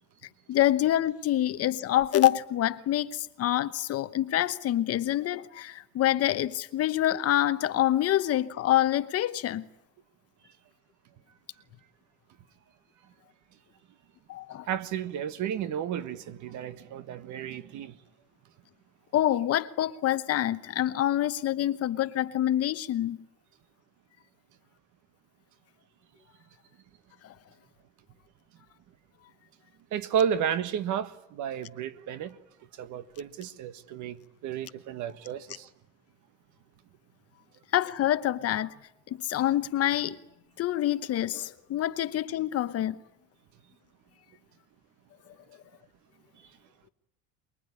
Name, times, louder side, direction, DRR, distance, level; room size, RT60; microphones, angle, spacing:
voice 1, 0.5-9.7 14.3-14.7 19.1-23.2 27.2-27.3 37.7-38.7 39.1-40.2 40.6-43.0, left 13 dB, 40° left, 1.0 m, -26 dB
voice 2, 14.7-18.0 29.9-32.4 32.7-35.7, right 9 dB, 50° right, 1.6 m, -32 dB
24.0 x 22.5 x 9.8 m
cardioid pair, 150°, 38 cm